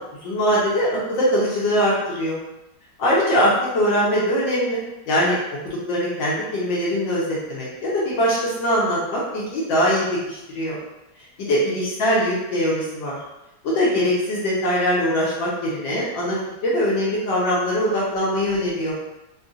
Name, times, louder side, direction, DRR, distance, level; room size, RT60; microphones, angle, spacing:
voice 1, 0.2-2.4 3.0-5.4 5.6-10.8 11.5-13.2 13.6-19.0, equal, 75° left, -6 dB, 1.5 m, -22 dB
3.6 x 2.6 x 2.4 m, 0.94 s
omnidirectional pair, 2.1 m